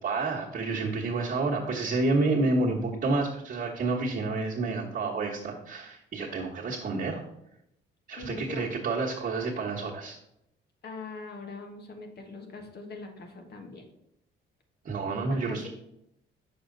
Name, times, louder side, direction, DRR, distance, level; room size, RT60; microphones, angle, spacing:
voice 1, 0.0-7.2 8.1-10.2 14.8-15.7, right 3 dB, 50° right, -6 dB, 1.4 m, -29 dB
voice 2, 8.2-8.7 10.8-13.8 15.3-15.7, left 3 dB, 55° left, 3 dB, 1.4 m, -42 dB
6.2 x 5.0 x 3.9 m, 0.80 s
cardioid pair, 90°, 20 cm